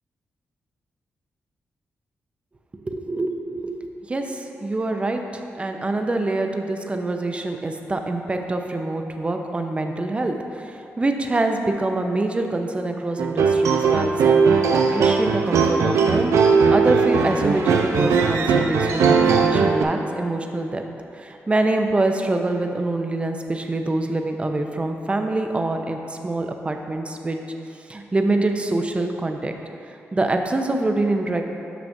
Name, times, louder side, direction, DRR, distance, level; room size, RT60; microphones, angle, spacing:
voice 1, 2.7-20.8 21.1-27.4 27.9-29.5 30.1-31.4, right 2 dB, 25° right, 4 dB, 0.6 m, -25 dB
sound 1, 13.2-19.8, right 5 dB, 85° right, 0.5 m, -18 dB
9.1 x 5.9 x 2.6 m, 2.7 s
cardioid pair, 90°, 5 cm